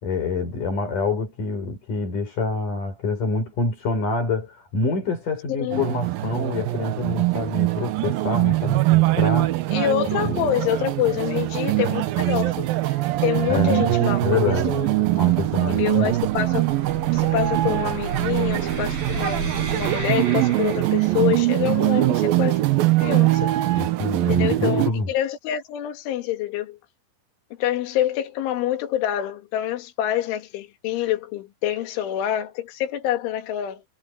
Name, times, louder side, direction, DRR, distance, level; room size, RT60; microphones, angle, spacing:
voice 1, 0.0-9.6 10.2-10.3 13.5-13.8 14.2-14.9 15.1-16.1 23.8-25.1, left 3 dB, 45° left, 7.0 m, -26 dB
sound 1, 5.7-24.9, right 17 dB, 85° right, 2.1 m, -22 dB
voice 2, 9.7-13.0 13.2-15.0 15.7-16.6 17.1-22.6 23.0-23.5 24.3-26.8 27.6-33.8, left 12 dB, 80° left, 4.5 m, -26 dB
sound 2, 10.4-21.4, right 5 dB, 55° right, 7.2 m, -36 dB
omnidirectional pair, 5.5 m